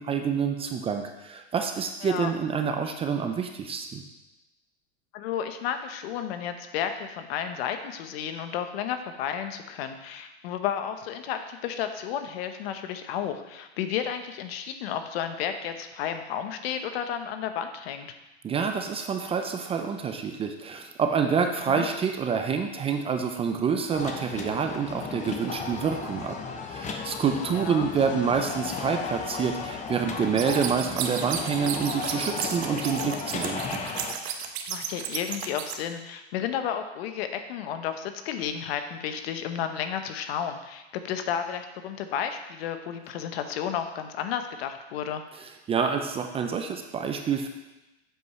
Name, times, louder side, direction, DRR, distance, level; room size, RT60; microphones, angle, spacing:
voice 1, 0.0-4.0 18.4-26.4 26.6-33.8 45.4-47.5, right 6 dB, 20° right, 5 dB, 0.5 m, -27 dB
voice 2, 5.1-18.1 21.7-21.8 27.5-27.9 34.7-45.2, left 9 dB, 65° left, 8 dB, 1.0 m, -32 dB
sound 1, 23.9-34.1, left 5 dB, 20° left, 0.8 m, -35 dB
sound 2, 30.4-35.7, right 8 dB, 75° right, 1.1 m, -33 dB
8.0 x 4.8 x 5.5 m, 1.0 s
supercardioid pair, 130°, 32 cm